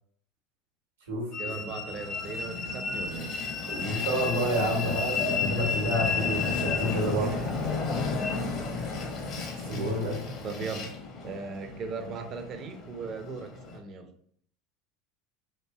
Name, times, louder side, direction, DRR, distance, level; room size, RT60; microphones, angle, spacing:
Train, 1.3-13.8, left 4 dB, 50° left, 0.7 m, -32 dB
voice 1, 1.4-3.4 7.1-7.9 9.7-11.0 11.2-14.1, right 4 dB, 45° right, 7 dB, 0.4 m, -38 dB
voice 2, 3.7-7.3 9.6-10.2, equal, 85° right, 0 dB, 0.9 m, -29 dB
3.0 x 2.5 x 2.3 m, 0.62 s
hypercardioid pair, 90°, 0 cm